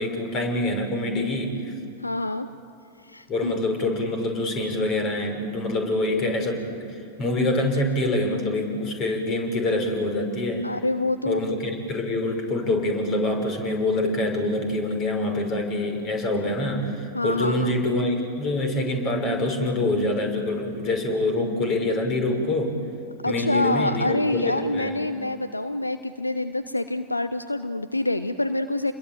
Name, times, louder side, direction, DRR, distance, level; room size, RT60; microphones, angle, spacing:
voice 1, 0.0-1.7 3.3-10.7 11.2-22.8 23.2-25.0, left 1 dB, 35° left, 4 dB, 6.0 m, -25 dB
voice 2, 2.0-2.5 3.0-3.5 10.6-11.5 17.1-17.8 23.2-28.9, left 2 dB, 85° left, 11 dB, 0.8 m, -26 dB
29.5 x 21.5 x 9.1 m, 2.7 s
figure-of-eight pair, 90°, 0 cm